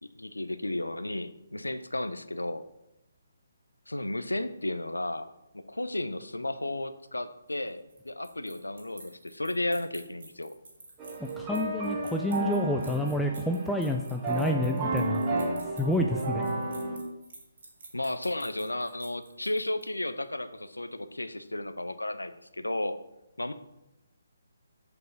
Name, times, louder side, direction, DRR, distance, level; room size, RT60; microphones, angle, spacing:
voice 1, 0.0-2.6 3.9-5.3 5.5-10.5 17.9-23.0 23.4-23.5, left 1 dB, 80° left, 11 dB, 0.6 m, -33 dB
sound 1, 7.5-20.1, right 3 dB, 50° right, 2.0 m, -50 dB
sound 2, 11.0-17.0, right 2 dB, 20° right, 1.7 m, -32 dB
voice 2, 11.4-15.3 15.8-16.4, left 1 dB, ahead, 2 dB, 0.4 m, -29 dB
7.7 x 4.8 x 5.4 m, 0.89 s
figure-of-eight pair, 140°, 0 cm